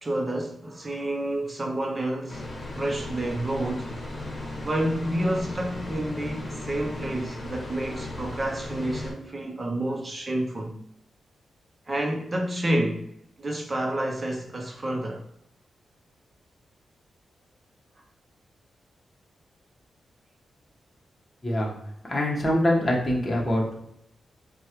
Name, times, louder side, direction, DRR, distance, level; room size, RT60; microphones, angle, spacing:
voice 1, 0.0-2.5 2.8-3.9 4.6-10.8 11.9-13.0 13.4-15.2, right 1 dB, 30° right, 0.6 m, -29 dB
sound 1, 2.3-9.1, left 1 dB, 45° left, 1.1 m, -36 dB
voice 2, 21.4-21.8 22.1-23.6, left 1 dB, 25° left, 1.1 m, -24 dB
4.4 x 2.2 x 3.0 m
cardioid pair, 85°, 0 cm